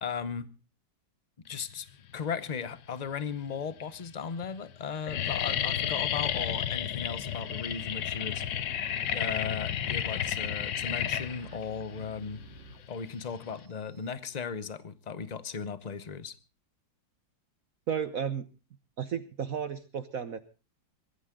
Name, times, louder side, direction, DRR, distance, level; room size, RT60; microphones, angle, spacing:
voice 1, 0.0-0.5 1.5-1.9 2.1-8.4 9.1-12.4 12.9-16.4, left 6 dB, 35° left, 0.6 m, -36 dB
sound 1, 2.5-3.0 3.7-3.8 4.1-4.5 4.7-13.7, left 10 dB, 65° left, 1.5 m, -32 dB
sound 2, 7.1-14.7, right 6 dB, 75° right, 2.5 m, -52 dB
voice 2, 17.9-18.5 19.0-20.4, right 7 dB, 55° right, 1.2 m, -33 dB
22.0 x 14.0 x 3.7 m
omnidirectional pair, 2.0 m